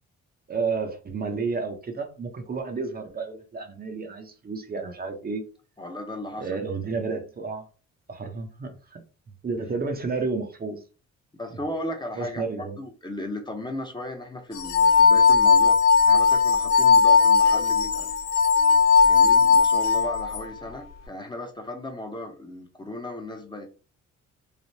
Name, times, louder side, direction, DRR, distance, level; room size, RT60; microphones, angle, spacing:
voice 1, 0.5-5.4 6.4-7.6 8.1-9.0 9.4-10.8 12.2-12.8, right 4 dB, 30° right, 0.6 m, -31 dB
voice 2, 5.8-6.5 11.4-12.4 12.8-15.8 16.1-18.1 19.0-23.7, left 1 dB, 15° left, 0.6 m, -36 dB
sound 1, 14.6-20.4, left 5 dB, 60° left, 0.5 m, -18 dB
3.2 x 2.1 x 2.6 m
cardioid pair, 90°, 30 cm